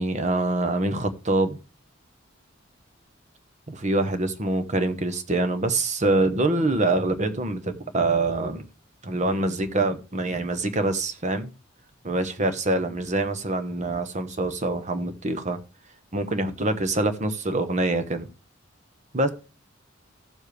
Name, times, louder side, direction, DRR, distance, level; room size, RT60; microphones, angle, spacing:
voice 1, 0.0-1.6 3.7-8.6 9.0-11.5 12.0-15.6 16.1-18.3 19.1-19.3, right 2 dB, 35° right, 1.0 m, -25 dB
14.5 x 7.3 x 3.3 m
head